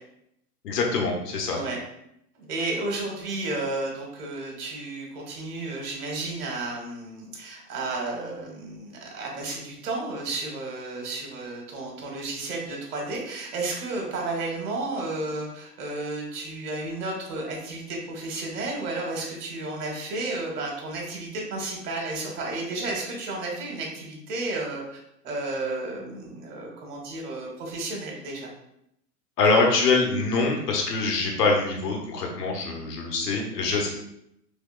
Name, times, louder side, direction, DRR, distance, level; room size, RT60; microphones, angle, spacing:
voice 1, 0.6-1.6 29.4-33.9, left 3 dB, 80° left, 1 dB, 1.1 m, -24 dB
voice 2, 1.5-1.8 2.3-28.5, right 2 dB, 70° right, 0 dB, 1.4 m, -32 dB
3.5 x 3.4 x 2.3 m, 0.78 s
hypercardioid pair, 125°, 48 cm